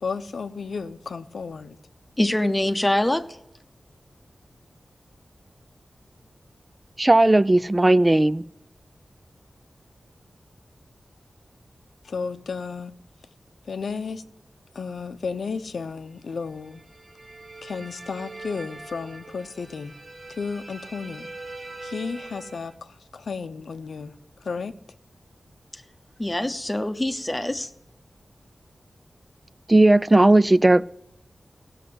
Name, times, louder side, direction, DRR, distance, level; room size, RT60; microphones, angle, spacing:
voice 1, 0.0-1.8 12.0-13.0 13.6-14.2 14.7-16.9 17.6-20.0 20.3-21.3 21.8-24.7, left 5 dB, 90° left, 10 dB, 0.7 m, -33 dB
voice 2, 2.2-3.3 26.2-27.7, left 1 dB, 15° left, 9 dB, 0.9 m, -24 dB
voice 3, 7.0-8.4 29.7-30.9, right 2 dB, 25° right, 18 dB, 0.4 m, -16 dB
sound 1, 16.5-22.8, right 2 dB, 50° right, 1.5 m, -42 dB
16.5 x 6.7 x 7.7 m, 0.81 s
wide cardioid pair, 80°, 0 cm